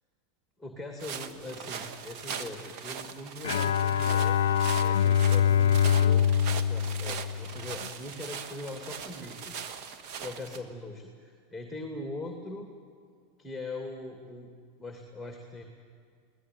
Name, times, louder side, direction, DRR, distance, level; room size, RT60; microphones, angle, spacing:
voice 1, 0.6-9.6 10.2-12.7 13.4-14.5 14.8-15.6, left 2 dB, ahead, 3 dB, 2.6 m, -41 dB
sound 1, 1.0-10.6, right 7 dB, 55° right, 1.5 m, -40 dB
Bowed string instrument, 3.4-7.9, left 8 dB, 85° left, 0.5 m, -24 dB
22.5 x 17.0 x 9.4 m, 2.1 s
hypercardioid pair, 100°, 0 cm